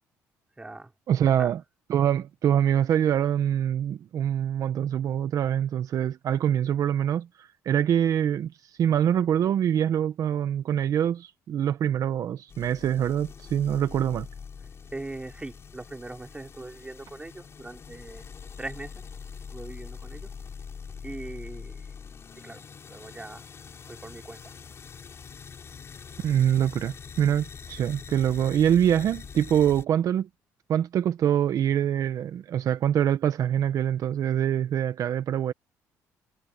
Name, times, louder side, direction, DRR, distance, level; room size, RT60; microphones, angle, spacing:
voice 1, 0.6-0.9 1.2-1.5 14.9-18.3 18.6-19.0 19.5-20.3 21.0-22.0 22.3-23.4 23.8-24.5, right 2 dB, 15° right, 3.4 m, -41 dB
voice 2, 1.1-1.6 1.9-14.3 26.2-30.3 30.7-35.5, right 10 dB, 60° right, 1.1 m, -24 dB
sound 1, 12.5-29.8, left 6 dB, 40° left, 6.6 m, -44 dB
cardioid pair, 90°, 7 cm